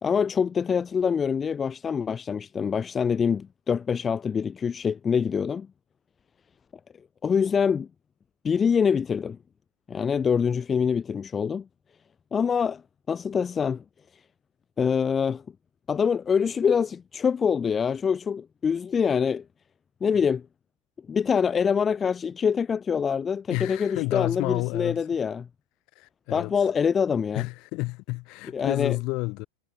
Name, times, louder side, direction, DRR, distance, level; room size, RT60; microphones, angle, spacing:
voice 1, 0.0-5.7 7.2-7.9 8.4-9.4 9.9-11.7 12.3-12.8 13.1-13.8 14.8-15.4 15.9-19.4 20.0-20.4 21.1-25.5 26.3-27.4 28.5-29.0, left 6 dB, 20° left, 0.8 m, -25 dB
voice 2, 23.5-25.0 26.0-26.5 27.3-29.5, left 25 dB, 40° left, 1.8 m, -30 dB
figure-of-eight pair, 90°, 0 cm